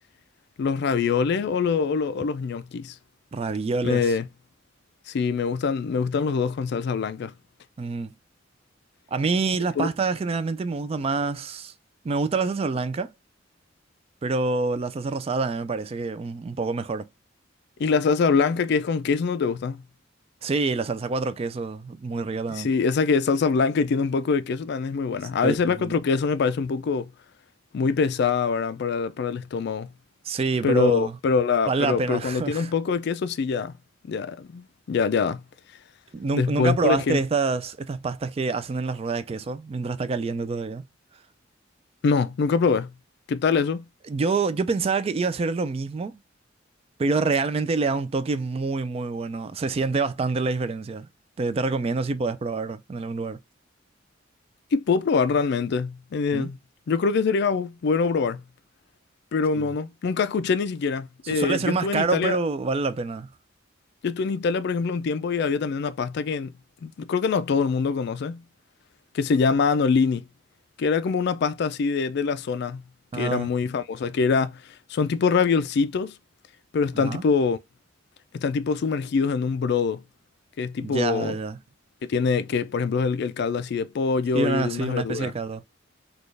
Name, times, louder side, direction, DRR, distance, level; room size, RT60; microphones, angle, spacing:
voice 1, 0.6-2.9 3.8-4.3 5.1-7.3 9.8-9.9 17.8-19.8 22.5-27.1 27.7-29.9 30.6-33.7 34.1-35.4 36.3-37.2 42.0-42.9 43.3-43.8 54.7-56.6 56.9-58.4 59.3-62.4 64.0-66.5 66.8-68.4 69.1-70.2 70.8-72.8 73.1-74.6 74.9-76.1 76.7-77.6 78.3-80.0 80.6-81.3 82.0-85.3, left 5 dB, 60° left, 0.3 m, -24 dB
voice 2, 3.3-4.1 7.8-8.1 9.1-11.7 12.0-13.1 14.2-17.1 20.4-22.7 25.4-25.9 30.3-31.2 31.7-32.7 36.1-40.8 44.1-46.2 47.0-51.1 51.4-53.4 56.3-56.5 59.6-59.7 61.2-63.3 73.1-73.5 76.9-77.2 80.8-81.6 84.3-85.6, right 4 dB, 30° right, 0.3 m, -26 dB
4.1 x 2.3 x 3.2 m
head